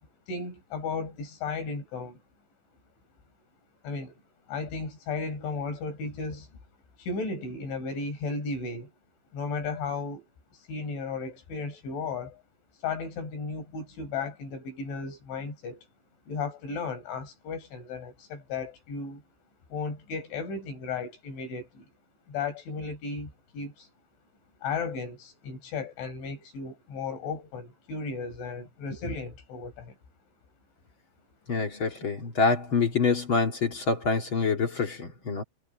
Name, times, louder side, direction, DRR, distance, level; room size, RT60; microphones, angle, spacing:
voice 1, 0.3-2.2 3.8-4.2 4.5-6.5 7.0-8.9 9.3-10.3 10.5-12.4 12.8-15.9 16.3-19.2 19.7-21.9 22.3-23.9 24.6-30.0, left 4 dB, 80° left, 8.7 m, -35 dB
voice 2, 31.5-35.4, left 4 dB, 45° left, 1.8 m, -26 dB
omnidirectional pair, 5.3 m